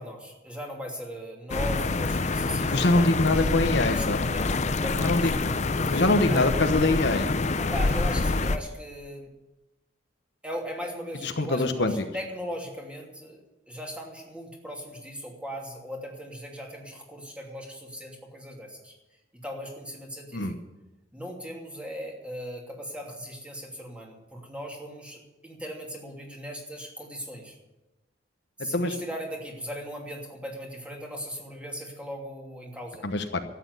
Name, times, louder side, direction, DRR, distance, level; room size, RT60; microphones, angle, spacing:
voice 1, 0.0-3.5 3.9-6.0 6.3-6.5 7.6-9.3 10.4-18.9 19.4-20.5 21.1-27.6 28.6-33.0, equal, 5° right, 0 dB, 2.7 m, -38 dB
sound 1, 1.5-8.6, left 3 dB, 35° left, 0.6 m, -26 dB
voice 2, 2.7-4.2 5.0-5.3 5.9-7.3 11.2-11.9 20.3-20.5 28.7-28.9 33.0-33.4, left 2 dB, 60° left, 7 dB, 1.1 m, -24 dB
13.0 x 8.9 x 9.6 m, 1.0 s
head